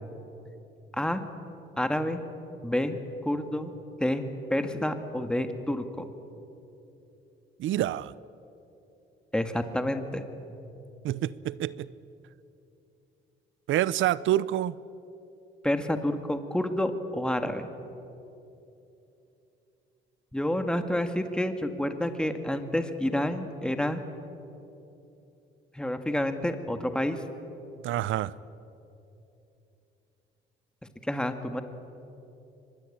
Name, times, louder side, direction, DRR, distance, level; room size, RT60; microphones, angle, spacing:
voice 1, 1.8-2.2 2.6-3.0 3.2-3.7 4.0-4.2 4.5-6.1 9.3-10.2 15.6-17.7 20.3-24.0 25.7-27.2 31.0-31.6, left 1 dB, 5° left, 7 dB, 1.9 m, -29 dB
voice 2, 7.6-8.1 11.0-11.9 13.7-14.7 27.8-28.3, right 13 dB, 75° right, 19 dB, 0.7 m, -27 dB
24.5 x 21.0 x 8.8 m, 2.9 s
cardioid pair, 90°, 20 cm